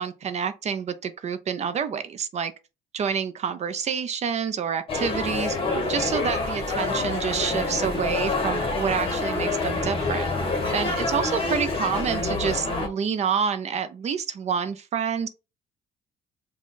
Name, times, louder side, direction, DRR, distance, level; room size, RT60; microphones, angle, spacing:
voice 1, 0.0-2.5 2.9-5.6 5.9-10.3 10.7-15.3, right 7 dB, 40° right, 0.5 m, -28 dB
sound 1, 4.9-12.9, left 3 dB, 35° left, 1.2 m, -27 dB
4.9 x 2.3 x 3.8 m
cardioid pair, 110°, 17 cm